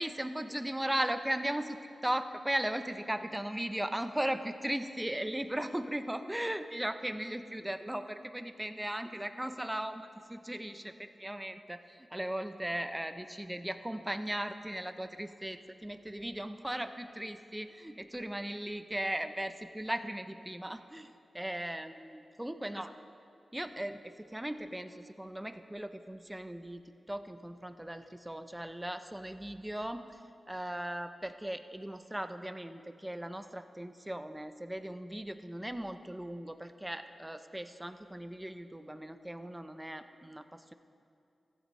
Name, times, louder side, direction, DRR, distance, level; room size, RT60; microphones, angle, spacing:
voice 1, 0.0-22.9 23.5-26.8 27.1-30.2 30.5-40.7, right 1 dB, 10° right, 9 dB, 0.6 m, -37 dB
15.0 x 12.0 x 3.1 m, 2.5 s
cardioid pair, 75°, 0 cm